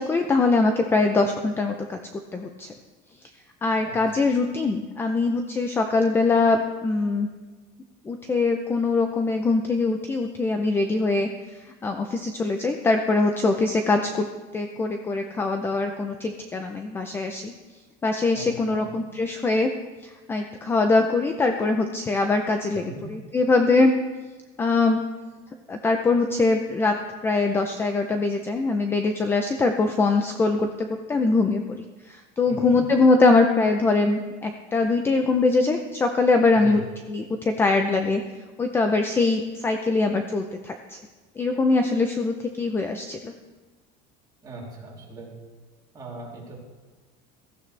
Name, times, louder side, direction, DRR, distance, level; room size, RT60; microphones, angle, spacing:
voice 1, 0.0-2.7 3.6-7.3 8.1-14.3 14.5-17.5 18.0-19.7 20.0-23.9 24.6-25.0 25.7-36.8 37.1-38.2 38.6-41.0 41.4-43.3, left 3 dB, 10° left, 5 dB, 0.5 m, -23 dB
voice 2, 18.3-18.9 22.7-23.0 32.5-32.8 36.5-36.8 44.4-45.3 45.9-46.6, right 3 dB, 20° right, -4 dB, 3.3 m, -39 dB
16.5 x 15.0 x 3.3 m, 1.3 s
cardioid pair, 180°, 19 cm